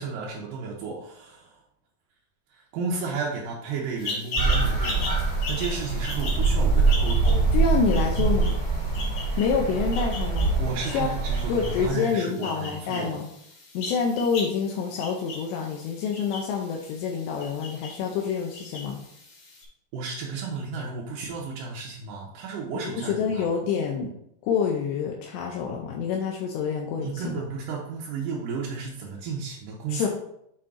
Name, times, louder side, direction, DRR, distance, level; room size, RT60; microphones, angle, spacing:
voice 1, 0.0-1.6 2.5-7.5 10.6-13.2 19.9-23.5 27.0-30.1, right 4 dB, 80° right, -3 dB, 1.9 m, -33 dB
sound 1, 4.0-19.6, left 2 dB, 55° left, 3.2 m, -38 dB
sound 2, 4.4-11.9, right 4 dB, 35° right, 0.5 m, -24 dB
voice 2, 7.5-8.6 9.4-10.6 10.8-11.1 11.5-13.3 13.7-19.0 22.7-24.1 24.4-27.4 29.9-30.1, left 6 dB, 80° left, 0 dB, 2.8 m, -27 dB
7.5 x 4.7 x 3.7 m, 0.75 s
omnidirectional pair, 5.1 m